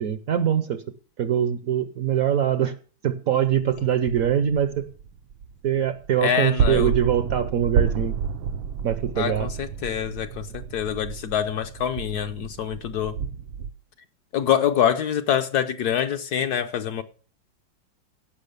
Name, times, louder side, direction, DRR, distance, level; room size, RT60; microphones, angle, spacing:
voice 1, 0.0-0.8 1.2-2.7 3.0-4.9 5.6-8.1 8.8-9.5, right 9 dB, 60° right, 0.9 m, -23 dB
sound 1, 3.6-13.7, right 6 dB, 85° right, 1.6 m, -30 dB
voice 2, 6.2-6.9 9.2-13.2 14.3-17.0, left 9 dB, 65° left, 1.1 m, -25 dB
16.0 x 6.1 x 6.6 m
omnidirectional pair, 2.1 m